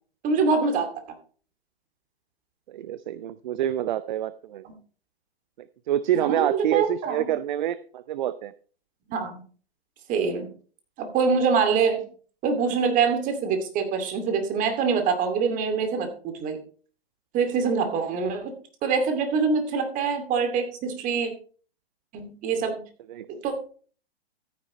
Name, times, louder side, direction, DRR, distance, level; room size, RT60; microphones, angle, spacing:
voice 1, 0.2-0.9 4.6-4.7 6.1-7.2 9.1-9.4 10.1-10.5 11.0-12.1 12.4-16.6 17.3-18.5 18.8-21.3 22.1-22.8 23.4-23.5, right 5 dB, 25° right, 6 dB, 2.5 m, -24 dB
voice 2, 2.7-4.6 5.6-8.5 23.1-23.3, right 11 dB, 50° right, 16 dB, 0.6 m, -27 dB
14.0 x 9.6 x 3.1 m, 0.41 s
hypercardioid pair, 125°, 31 cm